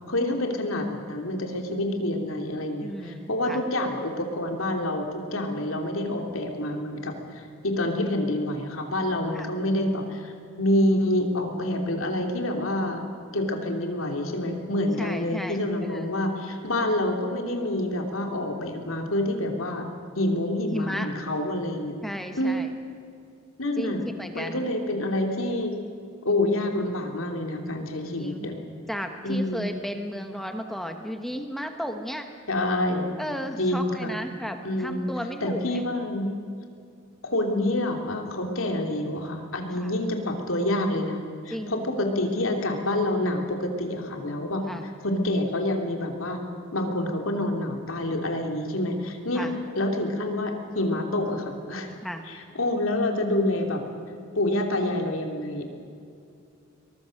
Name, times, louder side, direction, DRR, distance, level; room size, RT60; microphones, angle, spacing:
voice 1, 0.1-13.0 13.3-19.9 20.1-22.0 22.4-22.7 23.6-24.0 24.3-25.7 26.2-28.6 29.2-29.7 32.5-33.1 33.6-34.1 34.6-35.1 35.4-36.3 37.2-44.6 45.0-46.4 46.7-49.5 49.8-51.9 52.3-53.8 54.3-55.6, left 1 dB, 80° left, 3 dB, 3.0 m, -27 dB
voice 2, 2.8-3.6 9.3-9.5 15.0-16.1 20.7-21.1 22.0-22.7 23.8-24.7 28.2-28.5 28.9-32.3 33.2-35.8 39.8-39.9 41.5-41.8 44.7-44.9 49.3-49.5 52.0-52.3, equal, ahead, 5 dB, 1.1 m, -34 dB
23.0 x 20.5 x 6.5 m, 2.4 s
head